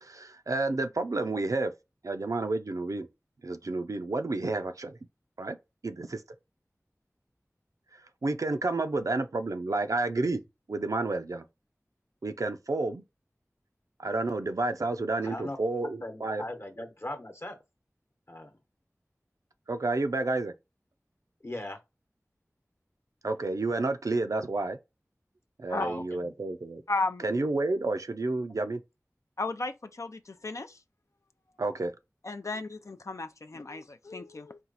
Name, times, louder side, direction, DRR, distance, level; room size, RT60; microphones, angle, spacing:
voice 1, 0.0-1.7 2.0-3.1 3.4-5.0 5.4-5.6 5.8-6.2 7.9-10.4 10.7-11.4 12.2-13.0 14.0-16.4 19.7-20.5 23.2-24.8 25.6-26.8 27.2-28.8 31.6-31.9, right 2 dB, 75° right, 0.5 m, -30 dB
voice 2, 15.2-15.6 16.0-17.6 18.3-18.5 21.4-21.8 25.8-26.3, left 1 dB, 50° left, 0.9 m, -38 dB
voice 3, 26.9-27.2 29.4-30.8 32.2-34.6, left 3 dB, 65° left, 0.4 m, -34 dB
4.4 x 2.3 x 3.9 m
wide cardioid pair, 45°, 6 cm